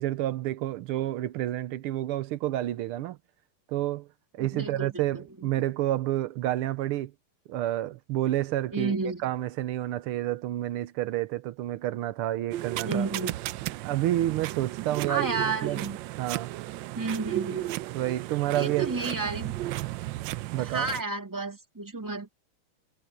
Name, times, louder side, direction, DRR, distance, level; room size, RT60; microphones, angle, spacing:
voice 1, 0.0-3.2 3.7-4.1 4.3-7.1 7.5-9.0 9.2-13.1 13.8-15.8 16.2-16.5 17.9-18.9 20.5-20.9, right 14 dB, 90° right, 1.7 m, -29 dB
voice 2, 4.4-5.2 8.7-9.2 12.8-13.3 15.1-16.0 17.0-17.7 18.5-19.5 20.6-22.3, right 4 dB, 10° right, 2.0 m, -31 dB
Scissor Cutting Paper, 12.5-21.0, right 15 dB, 75° right, 1.1 m, -34 dB
omnidirectional pair, 2.4 m